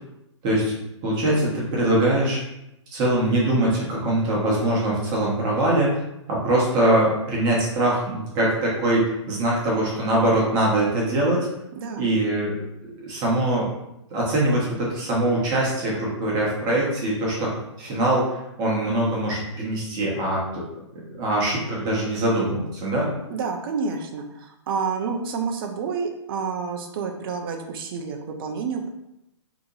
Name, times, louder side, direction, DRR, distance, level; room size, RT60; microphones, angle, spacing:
voice 1, 0.4-0.7 1.0-2.4 2.9-6.0 6.3-11.5 12.0-12.6 13.0-13.7 14.1-20.6 20.9-23.1, right 1 dB, 25° right, -5 dB, 1.1 m, -22 dB
voice 2, 11.8-12.1 23.3-28.9, right 5 dB, 45° right, 3 dB, 0.5 m, -29 dB
2.9 x 2.5 x 3.8 m, 0.85 s
hypercardioid pair, 145°, 16 cm